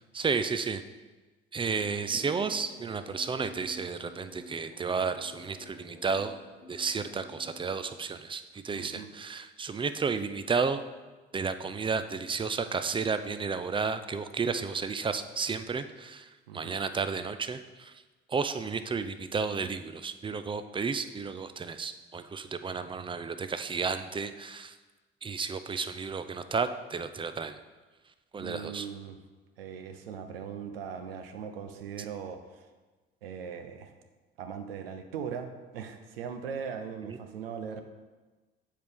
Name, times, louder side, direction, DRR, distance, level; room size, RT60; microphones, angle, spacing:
voice 1, 0.1-0.8 1.5-6.4 6.7-10.8 11.3-16.3 16.5-17.9 18.3-24.8 25.2-27.6 28.3-28.9 37.0-37.2, right 5 dB, 20° right, 10 dB, 0.4 m, -32 dB
sound 1, 1.6-7.9, equal, 85° left, 1.3 m, -50 dB
voice 2, 8.7-9.1 16.5-16.8 28.4-29.2 29.6-32.7 33.2-33.9 34.4-37.8, right 7 dB, 80° right, 7 dB, 0.6 m, -39 dB
7.3 x 4.6 x 3.6 m, 1.2 s
figure-of-eight pair, 50°, 29 cm